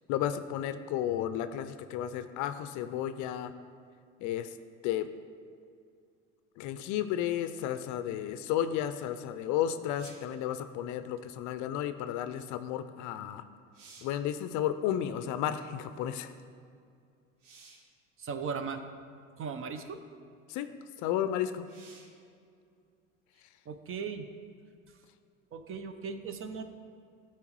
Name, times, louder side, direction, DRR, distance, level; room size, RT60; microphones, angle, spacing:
voice 1, 0.1-3.5 4.2-4.5 4.8-5.1 6.6-13.4 14.0-16.3 20.5-20.7 21.0-21.6, left 10 dB, 50° left, 11 dB, 0.5 m, -33 dB
sound 1, 10.0-10.4 13.1-13.2 13.6-14.3 17.4-17.9 19.0-19.1 21.6-22.2 25.8-25.9, right 4 dB, 80° right, 1.1 m, -55 dB
voice 2, 18.2-18.8 19.4-20.0 23.7-24.3 25.5-26.6, right 5 dB, 35° right, 8 dB, 0.7 m, -37 dB
13.0 x 4.4 x 3.1 m, 2.3 s
hypercardioid pair, 75°, 37 cm